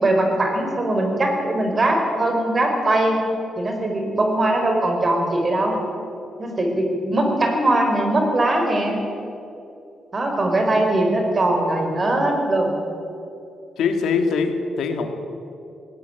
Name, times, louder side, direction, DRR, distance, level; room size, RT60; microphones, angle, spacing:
voice 1, 0.0-3.2 3.6-5.8 6.4-9.0 10.1-12.7, right 1 dB, 30° right, 3 dB, 4.8 m, -21 dB
voice 2, 13.8-15.1, left 5 dB, 90° left, 6 dB, 2.5 m, -22 dB
19.5 x 18.5 x 9.1 m, 2.7 s
cardioid pair, 135°, 0 cm